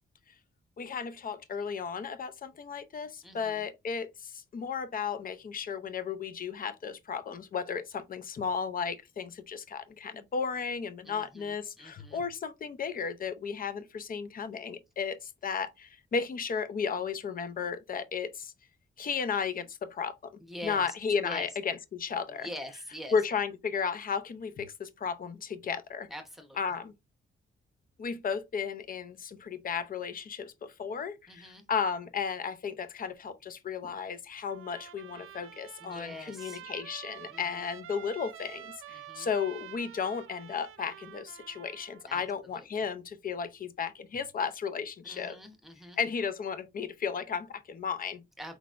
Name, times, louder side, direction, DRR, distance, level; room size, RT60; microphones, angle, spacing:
voice 1, 0.8-18.5 19.0-20.2 20.6-22.5 23.1-26.1 26.6-26.9 28.0-45.4 46.0-48.2, left 6 dB, 45° left, 0.6 m, -34 dB
voice 2, 3.2-3.6 11.0-12.2 20.5-20.9 21.2-21.5 22.4-23.1 26.1-26.6 31.3-31.6 35.8-36.6 37.3-37.6 38.9-39.3 42.0-42.2 42.5-42.8 45.0-46.0 48.4-48.6, left 1 dB, ahead, 1.0 m, -44 dB
Trumpet, 34.5-42.0, right 10 dB, 80° right, 0.6 m, -48 dB
4.5 x 4.0 x 2.5 m
wide cardioid pair, 145°, 21 cm